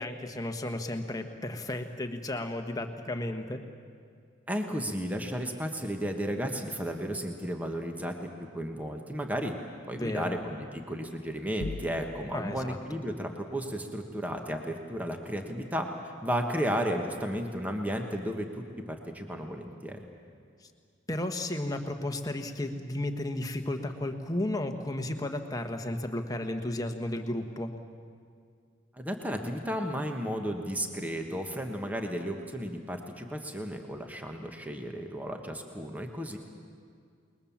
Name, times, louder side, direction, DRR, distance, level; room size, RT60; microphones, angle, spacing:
voice 1, 0.0-3.6 9.9-10.4 12.3-12.8 20.6-20.7 21.1-27.7, left 1 dB, 20° left, 5 dB, 1.3 m, -33 dB
voice 2, 4.5-8.2 8.5-9.5 9.8-20.0 28.9-36.4, equal, 10° right, 4 dB, 1.4 m, -33 dB
sound 1, 11.6-12.6, left 3 dB, 85° left, 0.6 m, -39 dB
28.0 x 21.0 x 7.3 m, 2.2 s
head